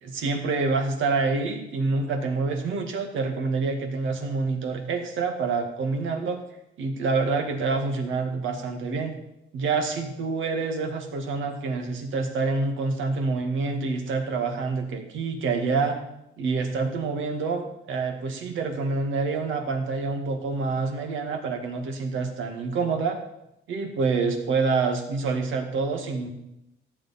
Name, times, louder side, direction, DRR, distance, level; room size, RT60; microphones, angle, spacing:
voice 1, 0.0-6.4 6.8-9.1 9.5-16.0 16.4-23.2 23.7-26.3, right 4 dB, 80° right, 4 dB, 2.0 m, -27 dB
14.0 x 9.7 x 4.4 m, 0.84 s
cardioid pair, 90°, 20 cm